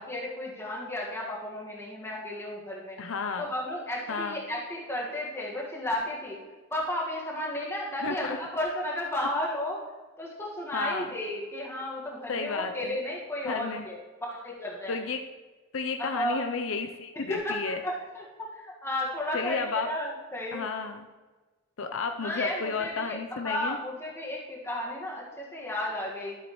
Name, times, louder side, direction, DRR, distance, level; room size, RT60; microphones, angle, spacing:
voice 1, 0.0-3.0 3.4-6.4 6.7-9.8 10.2-15.1 16.0-16.5 17.1-17.6 17.8-20.6 22.2-26.4, left 1 dB, 15° left, -4 dB, 1.7 m, -33 dB
voice 2, 3.0-3.5 4.1-4.4 8.0-8.4 10.7-11.1 12.3-13.0 13.5-13.8 14.9-15.2 15.7-17.8 19.3-19.9 20.5-21.1 21.8-23.8, left 4 dB, 75° left, 6 dB, 0.6 m, -32 dB
13.0 x 7.2 x 3.1 m, 1.3 s
head